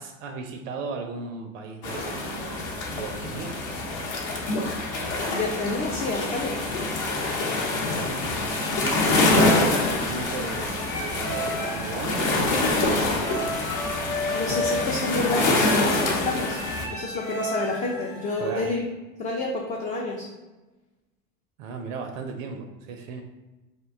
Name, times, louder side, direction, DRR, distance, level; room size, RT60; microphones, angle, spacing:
voice 1, 0.0-2.6 2.9-3.6 7.3-8.1 8.6-8.9 9.2-13.5 18.4-18.8 21.6-23.2, right 4 dB, 70° right, 4 dB, 0.5 m, -36 dB
sound 1, 1.8-16.9, left 2 dB, 50° left, 0.8 m, -26 dB
voice 2, 5.3-6.6 14.3-16.6 16.9-18.8 19.2-20.3, left 2 dB, 20° left, -2 dB, 0.3 m, -29 dB
sound 2, 9.2-18.7, left 1 dB, 90° left, 0.8 m, -34 dB
2.5 x 2.2 x 3.5 m, 1.1 s
hypercardioid pair, 75°, 41 cm